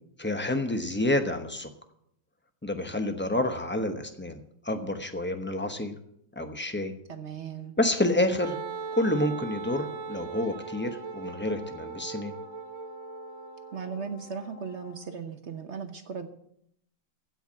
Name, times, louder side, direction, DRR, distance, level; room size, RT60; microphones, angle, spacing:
voice 1, 0.2-1.7 2.6-4.4 4.6-5.9 6.4-6.9 7.8-8.6 9.0-12.3, left 1 dB, 15° left, 6 dB, 0.4 m, -28 dB
voice 2, 7.1-7.7 13.7-16.3, right 6 dB, 50° right, 9 dB, 0.9 m, -37 dB
Wind instrument woodwind instrument, 7.9-15.2, left 7 dB, 40° left, 1.5 m, -50 dB
Wind instrument woodwind instrument 2, 8.4-14.0, right 6 dB, 80° right, 2.0 m, -39 dB
15.5 x 5.7 x 8.7 m, 0.73 s
omnidirectional pair, 2.1 m